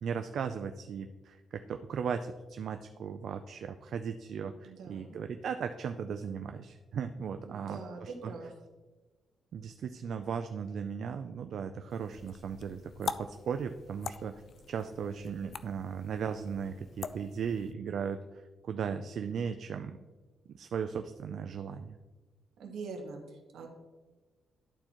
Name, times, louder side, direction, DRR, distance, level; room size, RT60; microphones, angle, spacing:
voice 1, 0.0-8.3 9.5-14.3 14.7-20.0 20.5-22.0, right 6 dB, 70° right, 7 dB, 0.4 m, -37 dB
voice 2, 4.6-5.2 7.4-8.5 22.6-23.7, right 4 dB, 85° right, 2 dB, 1.4 m, -43 dB
sound 1, 11.9-17.7, left 6 dB, 55° left, 0.3 m, -44 dB
12.0 x 4.3 x 3.0 m, 1.2 s
cardioid pair, 85°, 0 cm